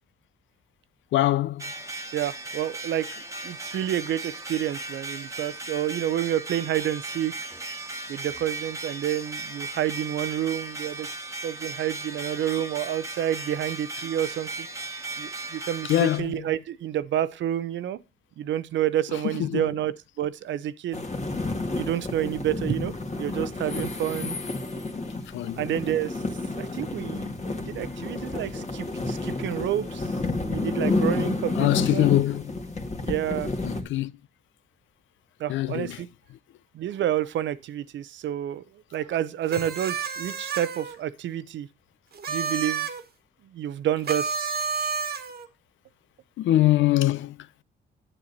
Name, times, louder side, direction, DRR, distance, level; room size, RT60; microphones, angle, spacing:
voice 1, 1.1-1.6 15.9-16.3 19.4-19.6 25.3-25.6 31.6-32.5 33.6-34.1 35.5-36.0 46.4-47.3, left 14 dB, 75° left, 0.5 m, -23 dB
sound 1, 1.6-16.2, right 2 dB, 15° right, 1.3 m, -37 dB
voice 2, 2.1-3.1 3.4-7.3 8.1-11.1 11.4-14.7 15.2-18.0 18.4-21.0 21.7-22.9 23.2-24.4 25.6-26.2 26.5-30.1 30.4-32.2 33.1-33.5 35.4-36.1 36.7-38.6 38.9-41.7 42.3-42.9 43.5-44.4, right 11 dB, 70° right, 0.7 m, -29 dB
sound 2, 20.9-33.8, left 2 dB, 35° left, 1.8 m, -30 dB
sound 3, 39.5-41.0 42.1-43.0 44.0-45.5, right 5 dB, 50° right, 1.4 m, -30 dB
8.9 x 8.1 x 4.0 m
cardioid pair, 90°, 20 cm